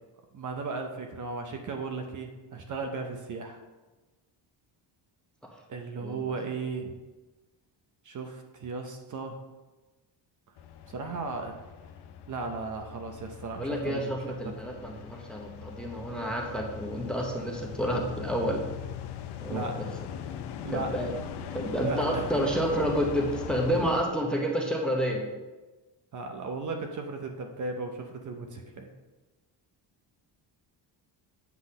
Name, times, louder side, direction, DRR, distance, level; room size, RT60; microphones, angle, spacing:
voice 1, 0.3-3.6 5.7-6.9 8.0-9.4 10.9-11.6 12.3-14.6 19.5-19.8 20.6-20.9 21.8-22.3 26.1-28.9, right 3 dB, 40° right, 4 dB, 0.7 m, -36 dB
sound 1, 10.6-24.0, left 9 dB, 60° left, 0.6 m, -40 dB
voice 2, 13.6-18.6 19.4-19.9 20.7-21.1 21.5-25.2, equal, ahead, 0 dB, 0.7 m, -29 dB
8.3 x 3.9 x 5.2 m, 1.2 s
cardioid pair, 160°, 45 cm